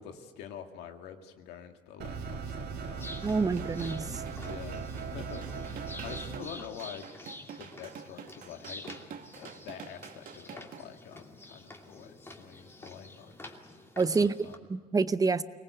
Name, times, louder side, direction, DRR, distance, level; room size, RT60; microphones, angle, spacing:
voice 1, 0.0-3.5 4.4-7.3 7.6-9.0 9.4-13.4 14.1-14.6, left 8 dB, 85° left, 5 dB, 2.1 m, -46 dB
sound 1, 2.0-6.4, right 5 dB, 80° right, 2.5 m, -38 dB
sound 2, 3.0-14.6, left 2 dB, 15° left, 2.6 m, -48 dB
voice 2, 3.2-4.2 14.0-15.4, right 4 dB, 20° right, 13 dB, 0.7 m, -28 dB
sound 3, 3.5-10.8, right 7 dB, 60° right, 1.7 m, -47 dB
24.0 x 19.5 x 8.3 m, 1.5 s
cardioid pair, 110°, 17 cm